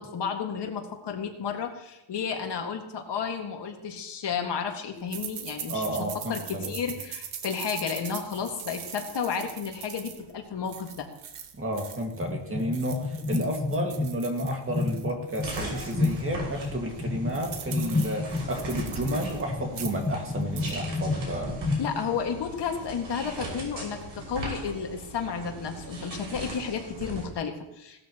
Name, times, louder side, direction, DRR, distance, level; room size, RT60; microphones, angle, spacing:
voice 1, 0.0-6.0 6.3-11.1 21.8-28.0, left 6 dB, 55° left, 3 dB, 1.9 m, -32 dB
sound 1, 5.1-12.3 12.6-16.2 16.6-16.7 17.0-19.4 19.7-20.1 20.4-20.8, right 8 dB, 85° right, 1.5 m, -42 dB
voice 2, 5.7-6.7 11.6-21.6, right 1 dB, 25° right, 2 dB, 2.1 m, -31 dB
sound 2, 12.1-22.3, left 3 dB, 15° left, 1.0 m, -31 dB
sound 3, 15.4-27.2, right 2 dB, 65° right, 6.0 m, -39 dB
18.0 x 13.0 x 3.0 m, 0.92 s
cardioid pair, 150°, 48 cm